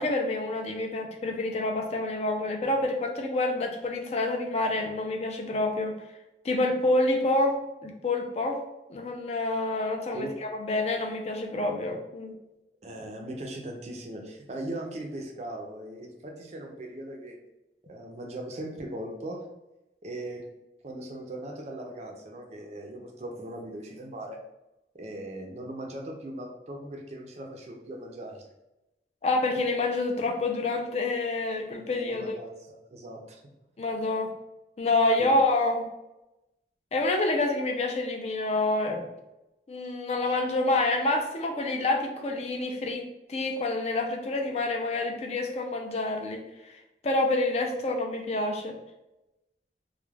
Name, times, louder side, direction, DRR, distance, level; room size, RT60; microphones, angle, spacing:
voice 1, 0.0-6.0 6.4-8.6 8.9-12.3 29.2-32.4 33.8-34.3 34.8-35.9 36.9-39.1 39.7-48.8, left 2 dB, 35° left, 2 dB, 0.4 m, -28 dB
voice 2, 12.8-17.4 17.8-19.5 20.0-20.4 20.8-24.4 24.9-28.5 31.9-33.4 35.2-35.4, right 1 dB, 40° right, 2 dB, 0.4 m, -39 dB
2.3 x 2.1 x 3.1 m, 0.95 s
head